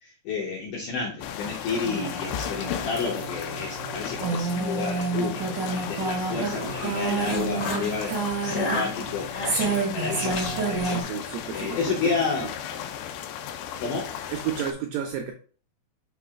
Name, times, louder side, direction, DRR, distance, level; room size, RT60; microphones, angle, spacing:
voice 1, 0.0-8.2 8.4-9.3 9.6-11.1 11.5-12.5 13.8-14.1, left 4 dB, 65° left, -3 dB, 2.3 m, -30 dB
sound 1, 1.2-14.7, left 9 dB, 85° left, 2.3 m, -35 dB
sound 2, 1.8-11.0, right 4 dB, 50° right, 1.3 m, -30 dB
voice 2, 6.2-6.8 10.9-12.5 14.3-15.3, right 8 dB, 75° right, 3 dB, 2.2 m, -33 dB
sound 3, 6.4-8.0 8.4-9.7 10.2-11.1, left 3 dB, 50° left, 1.7 m, -33 dB
5.9 x 4.7 x 3.7 m, 0.39 s
omnidirectional pair, 4.8 m